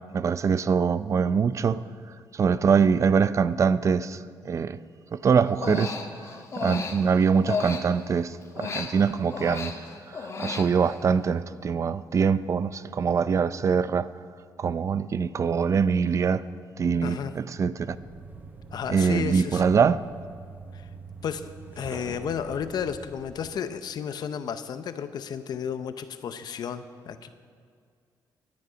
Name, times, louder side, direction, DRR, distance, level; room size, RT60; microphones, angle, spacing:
voice 1, 0.1-1.8 2.3-4.8 5.1-5.9 6.6-14.1 14.6-16.4 16.8-18.0 18.9-20.0, right 6 dB, 40° right, 0.5 m, -24 dB
Human voice, 5.5-8.2 8.5-11.1, left 4 dB, 40° left, 1.3 m, -33 dB
voice 2, 17.0-17.3 18.7-19.8 20.7-20.9 21.2-21.5 21.8-27.4, left 7 dB, 65° left, 0.7 m, -33 dB
sound 1, 17.8-23.6, right 4 dB, 25° right, 1.0 m, -44 dB
17.5 x 10.5 x 5.1 m
cardioid pair, 110°, 8 cm